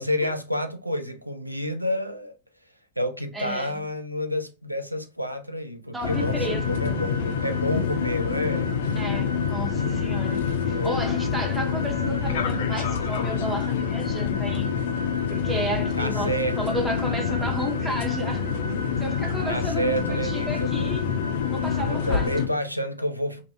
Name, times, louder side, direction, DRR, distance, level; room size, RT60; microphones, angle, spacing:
voice 1, 0.0-2.4 3.0-8.7 10.7-11.0 16.0-16.6 19.5-20.9 21.9-23.4, equal, 90° right, 0.3 m, -29 dB
voice 2, 3.3-3.7 5.9-6.6 9.0-14.7 15.3-18.5 19.0-21.2 21.5-22.3, right 1 dB, 10° right, 0.7 m, -32 dB
sound 1, 6.0-22.5, left 6 dB, 60° left, 0.4 m, -26 dB
2.5 x 2.3 x 2.5 m
figure-of-eight pair, 90°, 0 cm